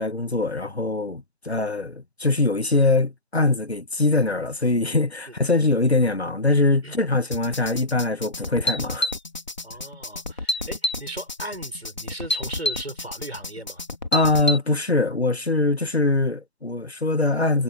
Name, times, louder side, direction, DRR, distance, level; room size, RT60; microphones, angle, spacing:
voice 1, 0.0-9.1 14.1-17.6, left 2 dB, 75° left, 1.9 m, -22 dB
sound 1, 7.3-14.6, left 1 dB, 40° left, 3.1 m, -29 dB
voice 2, 9.6-13.8, right 1 dB, 70° right, 6.9 m, -37 dB
figure-of-eight pair, 165°, 32 cm